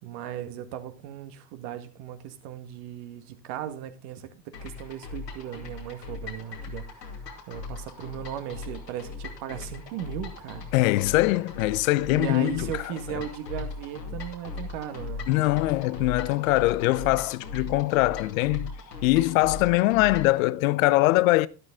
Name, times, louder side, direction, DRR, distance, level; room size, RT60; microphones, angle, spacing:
voice 1, 0.0-7.2 7.5-10.7 12.1-15.3, right 10 dB, 55° right, 1.8 m, -37 dB
sound 1, 4.5-20.4, left 4 dB, 85° left, 2.5 m, -39 dB
voice 2, 10.7-12.7 15.3-18.8 19.0-21.5, left 19 dB, 55° left, 0.7 m, -22 dB
12.0 x 12.0 x 3.6 m
figure-of-eight pair, 75°, 48 cm